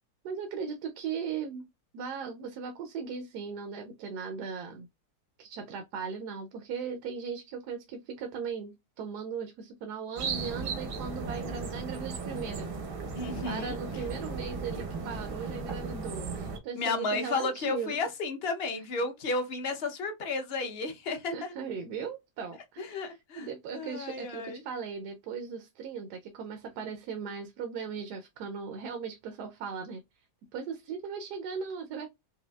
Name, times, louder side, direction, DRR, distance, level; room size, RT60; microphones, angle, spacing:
voice 1, 0.2-1.6 1.9-4.9 5.4-12.7 13.4-18.1 21.3-30.0 30.5-32.1, right 6 dB, 80° right, 1.2 m, -38 dB
sound 1, 10.2-16.6, right 4 dB, 50° right, 0.7 m, -36 dB
voice 2, 13.1-13.7 16.8-21.5 22.8-23.5 23.7-24.6, left 3 dB, 50° left, 0.8 m, -33 dB
5.0 x 2.6 x 2.3 m
omnidirectional pair, 1.7 m